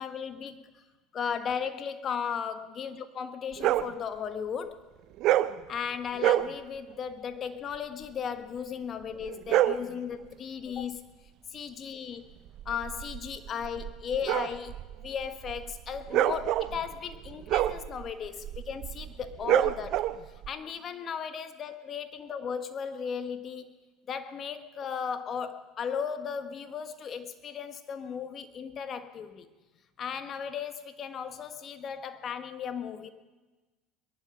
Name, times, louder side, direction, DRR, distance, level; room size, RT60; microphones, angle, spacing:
voice 1, 0.0-0.8 1.1-4.9 5.7-11.0 11.5-12.3 12.6-23.7 24.1-29.5 30.0-33.1, left 7 dB, 40° left, 9 dB, 1.5 m, -36 dB
sound 1, 3.6-4.0 5.2-5.6 6.2-6.5 9.2-9.9 12.5-20.5, right 13 dB, 60° right, 0.6 m, -28 dB
22.5 x 11.0 x 5.4 m, 1.2 s
hypercardioid pair, 90°, 0 cm